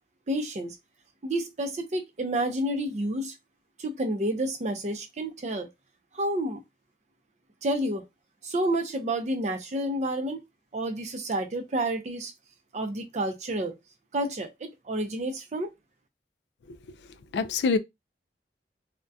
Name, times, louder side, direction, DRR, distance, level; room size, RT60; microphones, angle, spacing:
voice 1, 0.3-0.8 1.2-3.3 3.8-5.7 6.1-6.6 7.6-8.0 8.4-10.4 10.7-12.3 12.7-13.8 14.1-15.7, right 1 dB, 40° right, 0.4 m, -29 dB
voice 2, 17.3-17.8, left 4 dB, 75° left, 0.3 m, -26 dB
2.3 x 2.1 x 2.6 m
head